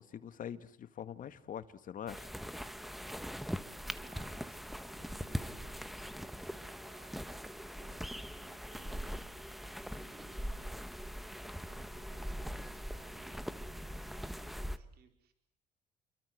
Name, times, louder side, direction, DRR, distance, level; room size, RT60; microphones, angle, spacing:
voice 1, 0.0-2.3, left 9 dB, 55° left, 12 dB, 1.9 m, -44 dB
sound 1, 2.1-14.8, equal, ahead, 1.4 m, -42 dB
voice 2, 4.0-15.3, right 8 dB, 70° right, 5 dB, 4.5 m, -62 dB
29.5 x 24.0 x 8.0 m, 0.69 s
cardioid pair, 110°, 17 cm